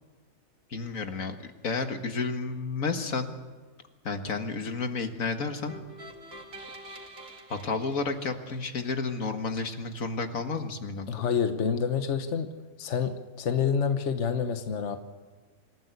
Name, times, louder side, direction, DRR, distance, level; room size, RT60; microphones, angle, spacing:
voice 1, 0.7-1.4 1.6-3.3 4.0-5.7 7.5-11.3, left 4 dB, 80° left, 6 dB, 2.0 m, -31 dB
sound 1, 5.7-8.9, right 1 dB, 90° right, 2.7 m, -46 dB
voice 2, 11.1-12.5 12.8-15.0, left 7 dB, 60° left, 8 dB, 1.4 m, -28 dB
26.5 x 14.5 x 8.3 m, 1.3 s
omnidirectional pair, 1.4 m